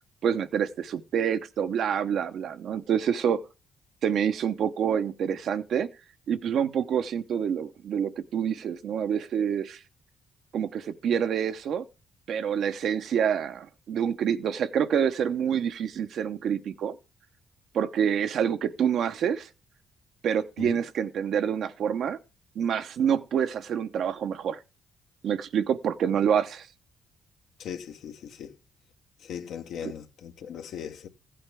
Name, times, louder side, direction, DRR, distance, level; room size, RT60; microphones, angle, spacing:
voice 1, 0.2-3.4 4.0-5.9 6.3-9.8 10.5-11.8 12.3-16.9 17.7-19.5 20.2-22.2 22.6-24.6 25.2-26.7 29.8-29.9, right 8 dB, 70° right, 0.8 m, -27 dB
voice 2, 27.6-28.5 29.2-31.1, left 8 dB, 75° left, 1.1 m, -38 dB
15.0 x 8.6 x 3.5 m
cardioid pair, 90°, 0 cm